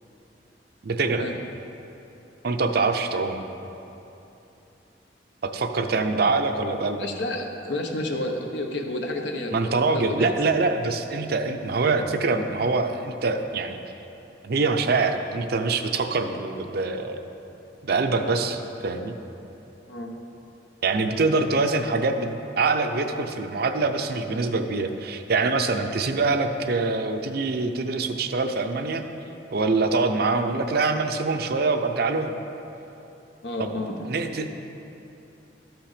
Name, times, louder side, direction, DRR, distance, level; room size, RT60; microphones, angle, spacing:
voice 1, 0.8-1.3 2.4-3.4 5.4-7.1 9.5-13.8 14.4-17.2 17.8-19.2 20.8-29.0 29.5-32.4 33.6-33.7 34.1-34.5, right 3 dB, 60° right, 7 dB, 0.6 m, -24 dB
voice 2, 7.0-10.3 19.9-20.1 33.4-34.0, left 1 dB, 75° left, 3 dB, 1.0 m, -30 dB
12.5 x 6.0 x 5.0 m, 3.0 s
head